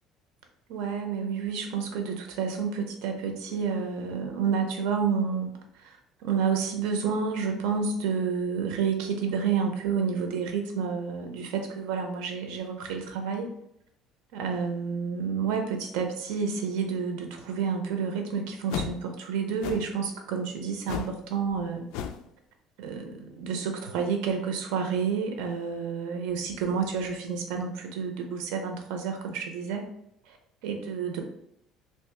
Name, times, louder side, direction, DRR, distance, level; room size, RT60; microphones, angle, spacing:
voice 1, 0.7-5.5 5.8-6.0 6.2-13.5 14.3-21.8 22.8-29.9 30.6-31.2, right 6 dB, 85° right, 4 dB, 0.7 m, -29 dB
sound 1, 18.7-19.0 19.6-20.0 20.9-21.2 21.5-21.6 21.9-22.3, left 8 dB, 80° left, 0.3 m, -34 dB
3.0 x 2.8 x 3.3 m, 0.73 s
cardioid pair, 140°, 0 cm